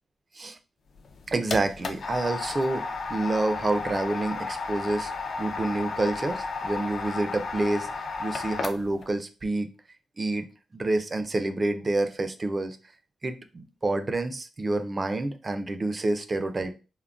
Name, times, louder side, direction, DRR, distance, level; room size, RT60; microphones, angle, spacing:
sound 1, 0.9-9.1, left 4 dB, 60° left, 0.4 m, -33 dB
voice 1, 1.3-5.1 5.4-9.7 10.2-10.5 10.7-12.8 13.2-16.7, right 2 dB, 30° right, 9 dB, 0.3 m, -28 dB
3.6 x 2.0 x 2.3 m, 0.33 s
wide cardioid pair, 125°, 0 cm